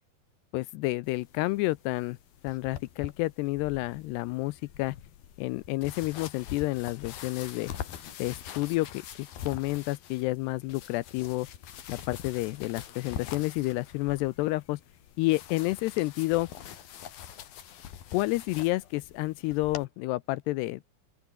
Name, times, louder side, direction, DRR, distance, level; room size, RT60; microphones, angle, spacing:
voice 1, 0.5-2.2 2.4-5.0 5.4-7.7 8.2-11.5 11.9-14.8 15.2-16.5 18.1-20.9, left 20 dB, 85° left, 2.4 m, -30 dB
sound 1, 1.0-19.9, left 10 dB, 60° left, 3.6 m, -44 dB
open air
omnidirectional pair, 5.3 m